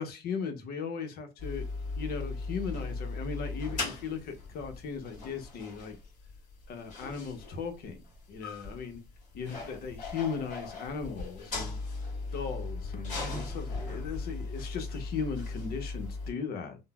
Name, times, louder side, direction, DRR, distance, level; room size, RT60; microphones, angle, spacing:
voice 1, 0.0-1.7 2.0-6.0 6.7-8.0 8.3-9.0 9.3-11.8 12.3-16.8, left 5 dB, 65° left, 0.7 m, -37 dB
sound 1, 1.4-16.3, left 3 dB, 50° left, 1.5 m, -38 dB
3.7 x 2.0 x 2.3 m
cardioid pair, 110°, 17 cm